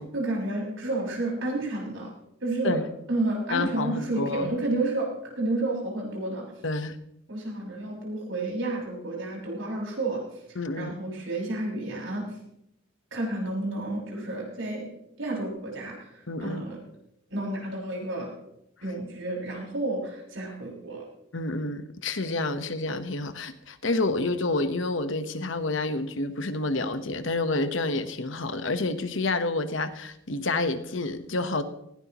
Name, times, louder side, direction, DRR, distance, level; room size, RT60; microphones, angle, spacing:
voice 1, 0.1-2.1 2.4-2.8 3.1-6.5 7.3-10.2 10.5-12.3 13.1-14.9 15.2-16.8 17.3-18.3 18.8-21.0, right 2 dB, 80° right, -2 dB, 6.4 m, -31 dB
voice 2, 3.5-4.5 6.6-7.0 10.5-10.9 16.3-16.7 21.3-31.6, left 2 dB, 75° left, 9 dB, 1.2 m, -29 dB
19.0 x 16.5 x 3.1 m, 0.79 s
head